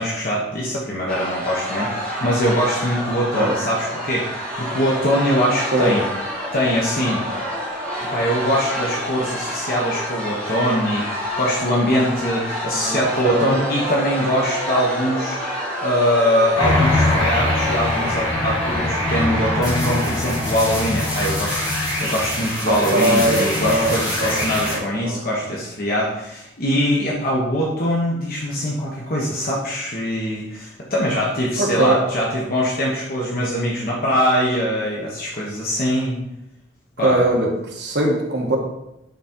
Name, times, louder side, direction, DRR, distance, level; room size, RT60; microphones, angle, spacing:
voice 1, 0.0-6.0 6.5-7.3 8.1-15.4 15.8-36.2 37.0-37.3, equal, 50° left, -3 dB, 1.2 m, -22 dB
sound 1, 1.1-19.6, equal, 5° left, 2.2 m, -28 dB
voice 2, 11.8-12.4 12.7-13.0 13.3-13.5 22.7-25.2 31.6-32.0 37.0-38.6, right 1 dB, 60° right, 0 dB, 1.5 m, -21 dB
sound 2, 16.6-24.8, left 1 dB, 20° left, 1.9 m, -23 dB
9.4 x 4.0 x 4.5 m, 0.85 s
head